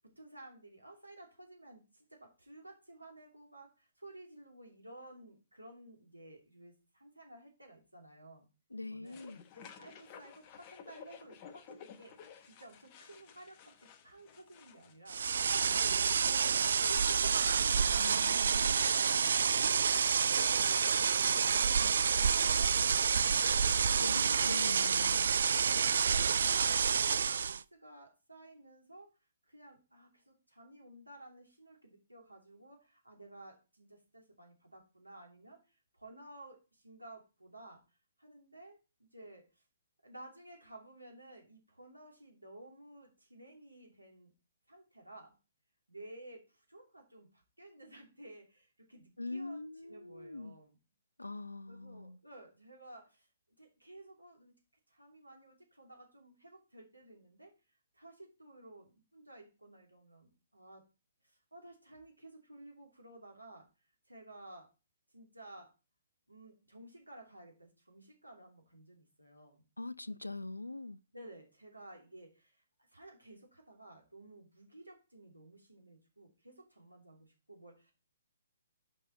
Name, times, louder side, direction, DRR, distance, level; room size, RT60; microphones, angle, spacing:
voice 1, 0.2-8.5 8.9-9.2 9.6-15.9 16.3-19.8 20.2-21.9 25.6-29.1 29.4-37.8 38.2-38.8 39.1-39.6 40.0-44.3 44.7-45.4 45.9-50.8 51.7-53.3 53.6-54.5 54.9-57.5 57.9-60.8 61.2-63.7 64.1-64.7 65.1-65.7 66.3-69.6 71.1-72.6 72.9-77.9, right 1 dB, 85° right, 2.8 m, -54 dB
voice 2, 8.7-9.4 18.0-19.3 24.0-25.3 49.2-50.6 51.2-52.2 69.8-71.0, left 2 dB, 80° left, 0.4 m, -43 dB
sound 1, 9.1-15.0, left 7 dB, 30° left, 0.8 m, -54 dB
sound 2, 15.1-27.6, right 6 dB, 60° right, 0.4 m, -28 dB
9.3 x 5.6 x 4.1 m
figure-of-eight pair, 125°, 0 cm